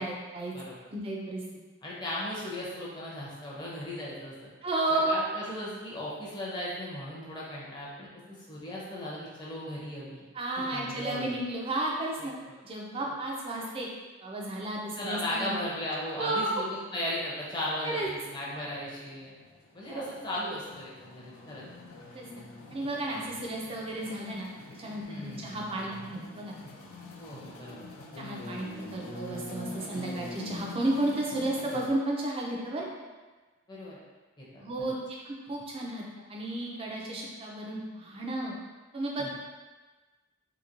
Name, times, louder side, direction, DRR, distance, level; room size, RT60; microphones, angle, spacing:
voice 1, 0.0-0.5 0.9-1.4 4.6-5.2 10.3-12.3 12.6-13.9 14.2-15.6 16.2-16.5 17.8-18.1 19.9-20.0 22.1-22.3 22.7-24.5 24.8-26.6 28.2-32.8 34.6-34.9 35.2-38.5 38.9-39.3, right 2 dB, 25° right, -2 dB, 0.4 m, -33 dB
voice 2, 1.8-4.5 5.1-10.2 10.7-11.3 12.2-12.3 12.9-13.1 15.0-19.3 19.7-21.9 25.0-25.4 27.2-27.9 33.7-34.0 34.4-34.6 39.2-39.3, left 1 dB, 20° left, -6 dB, 0.6 m, -37 dB
sound 1, 18.6-31.9, left 2 dB, 75° left, 0.4 m, -45 dB
2.9 x 2.7 x 2.6 m, 1.3 s
head